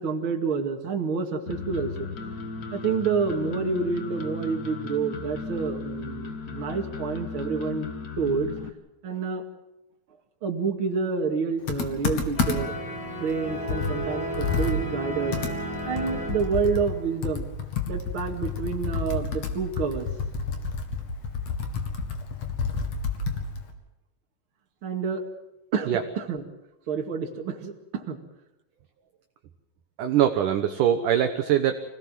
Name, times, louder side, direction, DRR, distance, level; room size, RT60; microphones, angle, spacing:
voice 1, 0.0-2.1 2.7-7.9 8.2-8.5 9.0-9.4 10.4-12.7 13.2-15.4 15.8-17.5 17.9-20.1 24.8-25.2 25.7-26.4 26.9-28.2, right 5 dB, 40° right, 2 dB, 2.5 m, -28 dB
sound 1, 1.5-8.7, left 4 dB, 70° left, 0.8 m, -36 dB
Computer keyboard, 11.7-12.9 13.3-13.4 13.7-17.0 17.2-23.7, left 5 dB, 50° left, 3.0 m, -30 dB
sound 2, 12.4-17.2, right 1 dB, 30° left, 4.9 m, -33 dB
voice 2, 30.0-31.8, right 10 dB, 65° right, 6 dB, 2.3 m, -22 dB
26.0 x 17.5 x 7.6 m, 0.94 s
omnidirectional pair, 4.5 m